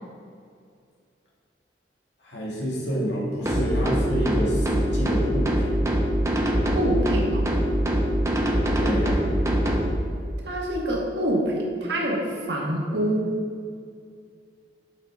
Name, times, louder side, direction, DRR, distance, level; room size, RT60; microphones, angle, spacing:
voice 1, 2.2-5.8 8.8-9.4, equal, 85° left, -4 dB, 1.9 m, -28 dB
sound 1, 3.4-9.9, equal, 15° right, 0.7 m, -23 dB
voice 2, 6.7-7.5 10.4-13.4, right 1 dB, 75° right, -2 dB, 1.5 m, -26 dB
8.4 x 5.7 x 3.5 m, 2.3 s
head